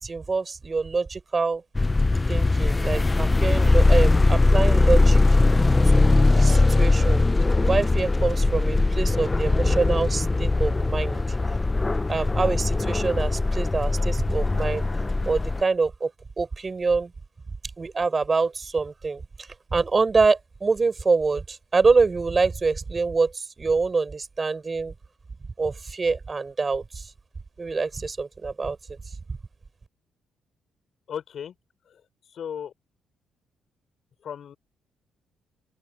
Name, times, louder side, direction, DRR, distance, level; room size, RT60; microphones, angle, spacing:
voice 1, 0.0-1.6 2.3-5.2 5.8-7.2 7.7-11.2 12.1-14.8 15.2-16.1 16.4-17.1 17.8-19.2 19.7-24.9 25.6-27.1 27.6-28.8, right 4 dB, 30° right, 5.2 m, -25 dB
sound 1, 1.7-15.6, left 2 dB, 20° left, 0.6 m, -20 dB
voice 2, 31.1-31.5 32.4-32.7 34.2-34.6, left 8 dB, 60° left, 5.3 m, -34 dB
open air
cardioid pair, 90°, 0 cm